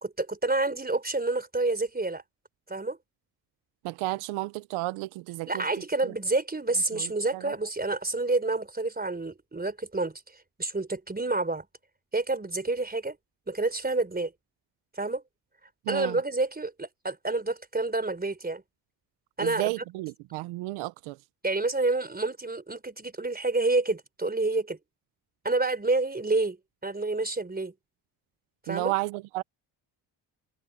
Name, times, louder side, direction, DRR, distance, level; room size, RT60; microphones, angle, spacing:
voice 1, 0.0-2.2 2.7-3.0 5.5-10.2 10.6-11.7 12.1-13.2 13.5-14.3 15.0-15.2 15.9-18.6 19.4-19.7 21.4-24.8 25.4-26.6 26.8-27.7 28.7-28.9, right 2 dB, 20° right, 4.0 m, -28 dB
voice 2, 3.8-5.6 6.0-6.1 6.9-7.5 15.9-16.2 19.4-21.2 28.7-29.4, right 19 dB, 90° right, 0.9 m, -32 dB
supercardioid pair, 60°, 48 cm